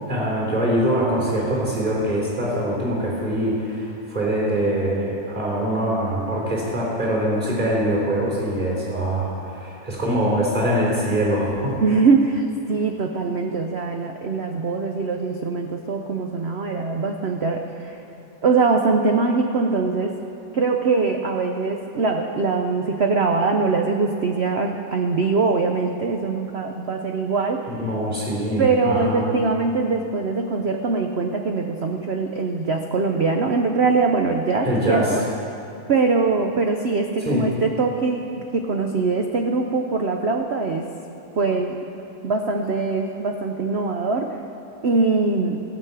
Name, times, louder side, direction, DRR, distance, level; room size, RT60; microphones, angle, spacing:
voice 1, 0.1-11.8 27.7-29.3 34.6-35.2 37.2-37.5, right 1 dB, 20° right, -4 dB, 3.5 m, -23 dB
voice 2, 11.8-18.0 18.4-20.2 20.5-27.7 28.6-35.2 35.9-38.2 38.5-40.9 41.4-41.8 42.2-44.4 44.8-45.6, right 4 dB, 75° right, 3 dB, 0.5 m, -22 dB
16.0 x 6.1 x 8.1 m, 3.0 s
omnidirectional pair, 2.0 m